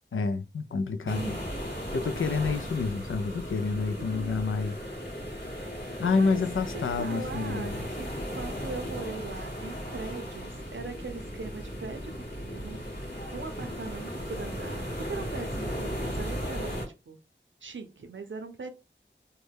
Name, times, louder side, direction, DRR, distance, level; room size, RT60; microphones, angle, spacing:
voice 1, 0.1-1.3 1.9-4.8 6.0-7.8, left 4 dB, 85° left, 0.4 m, -28 dB
voice 2, 1.0-1.6 3.7-4.4 5.8-6.4 6.7-12.8 13.3-17.2 17.6-18.7, right 4 dB, 70° right, 0.6 m, -41 dB
sound 1, 1.1-16.8, equal, 55° left, 1.7 m, -36 dB
3.1 x 2.1 x 3.4 m
wide cardioid pair, 45°, 20 cm